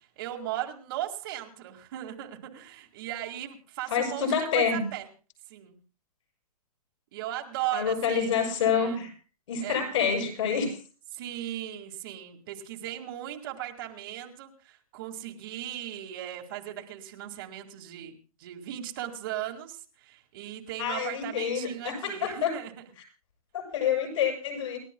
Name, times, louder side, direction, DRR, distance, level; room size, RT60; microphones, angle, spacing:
voice 1, 0.2-5.1 5.5-5.8 7.1-9.0 9.6-9.9 11.1-22.7, right 12 dB, 40° right, 3 dB, 2.0 m, -37 dB
voice 2, 3.9-4.8 7.7-9.1 9.5-10.8 20.8-22.5 23.5-24.8, left 7 dB, 55° left, 3 dB, 6.8 m, -27 dB
29.0 x 12.5 x 2.2 m, 0.36 s
hypercardioid pair, 165°, 19 cm